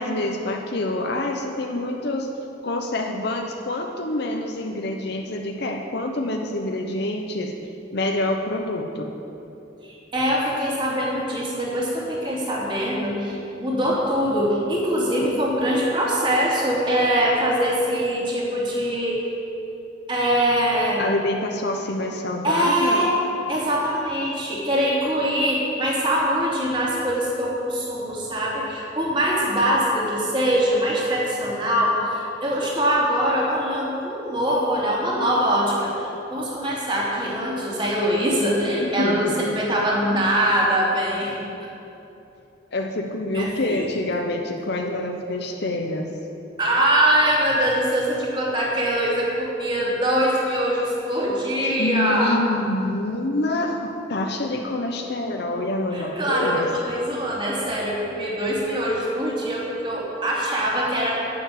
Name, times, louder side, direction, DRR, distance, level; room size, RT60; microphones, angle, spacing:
voice 1, 0.0-2.3 2.6-7.5 7.9-9.1 21.0-23.1 38.8-39.4 42.7-46.1 51.6-56.7, left 2 dB, 60° left, 2 dB, 0.8 m, -26 dB
voice 2, 9.8-19.2 20.1-21.0 22.4-23.1 23.5-41.4 43.3-43.9 46.6-52.4 55.9-61.1, equal, 25° right, -4 dB, 2.8 m, -23 dB
11.5 x 7.1 x 9.2 m, 2.9 s
head